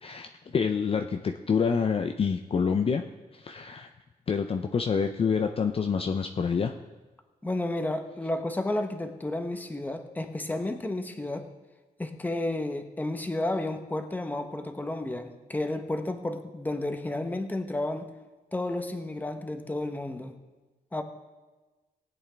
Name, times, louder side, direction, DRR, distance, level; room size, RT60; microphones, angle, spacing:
voice 1, 0.0-3.0 3.3-3.9 4.3-6.7, left 6 dB, 40° left, 5 dB, 0.5 m, -27 dB
voice 2, 7.4-11.4 12.0-18.1 18.5-20.3 20.9-21.0, left 1 dB, 10° left, 6 dB, 0.9 m, -32 dB
19.0 x 8.3 x 3.4 m, 1.2 s
wide cardioid pair, 115°, 15 cm